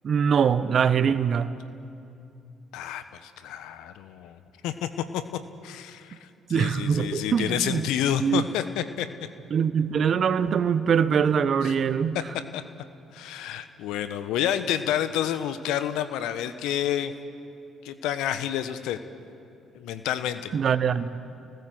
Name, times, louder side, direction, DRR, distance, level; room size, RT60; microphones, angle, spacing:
voice 1, 0.0-1.5 6.5-7.9 8.2-8.4 9.5-12.2 20.5-21.2, right 7 dB, 55° right, 1.2 m, -23 dB
voice 2, 2.7-5.2 5.6-9.1 11.6-11.7 12.5-12.6 13.1-17.1 17.8-19.0 19.7-20.5, left 10 dB, 70° left, 1.1 m, -29 dB
29.0 x 19.0 x 7.9 m
hypercardioid pair, 50°, 0 cm